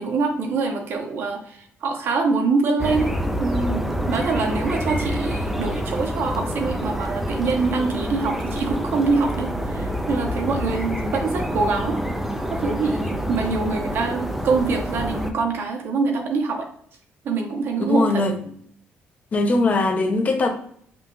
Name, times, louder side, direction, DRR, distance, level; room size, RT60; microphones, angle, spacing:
voice 1, 0.0-12.0 12.5-16.7 17.2-18.2, right 4 dB, 60° right, 0.9 m, -24 dB
sound 1, 2.8-15.3, equal, 5° right, 0.5 m, -27 dB
voice 2, 17.8-18.4 19.3-20.5, left 2 dB, 35° left, 0.8 m, -21 dB
5.3 x 2.4 x 3.1 m
cardioid pair, 125°, 4 cm